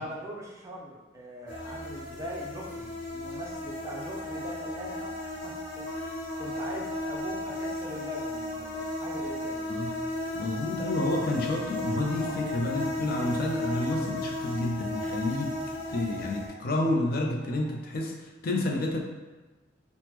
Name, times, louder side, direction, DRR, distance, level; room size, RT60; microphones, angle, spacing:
voice 1, 0.0-9.6 12.2-12.4, equal, 15° right, -3 dB, 0.4 m, -41 dB
sound 1, 1.5-16.5, left 1 dB, 85° left, 0.7 m, -35 dB
sound 2, 3.6-18.1, equal, 35° left, 1.1 m, -50 dB
voice 2, 10.3-15.5 15.9-19.0, left 2 dB, 50° left, 1 dB, 0.4 m, -29 dB
3.3 x 2.0 x 2.9 m, 1.2 s
head